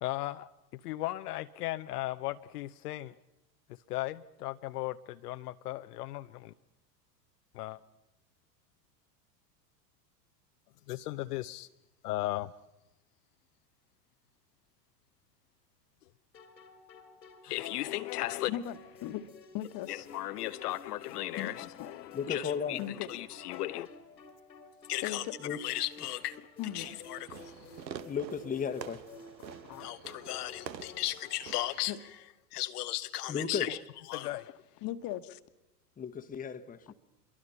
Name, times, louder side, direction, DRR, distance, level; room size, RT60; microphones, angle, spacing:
voice 1, 0.0-3.1 3.7-6.5 7.5-7.8 10.9-11.7 12.0-12.5 17.4-18.5 19.9-23.9 24.9-26.5 26.7-27.9 29.8-32.0 32.5-33.8 34.1-34.6, left 16 dB, 65° left, 0.8 m, -36 dB
sound 1, 16.3-32.3, left 4 dB, 90° left, 2.6 m, -53 dB
voice 2, 18.5-19.3 19.5-20.1 21.4-21.7 22.8-23.1 25.0-25.3 26.6-26.9 29.6-29.8 31.9-32.0 34.8-35.4, left 12 dB, 45° left, 1.4 m, -38 dB
voice 3, 22.1-22.8 25.4-25.6 28.0-29.0 33.3-33.7 36.0-36.9, left 6 dB, 15° left, 1.2 m, -34 dB
Fireworks, 26.6-31.8, right 8 dB, 90° right, 1.1 m, -47 dB
25.5 x 22.5 x 5.6 m
hypercardioid pair, 95°, 50 cm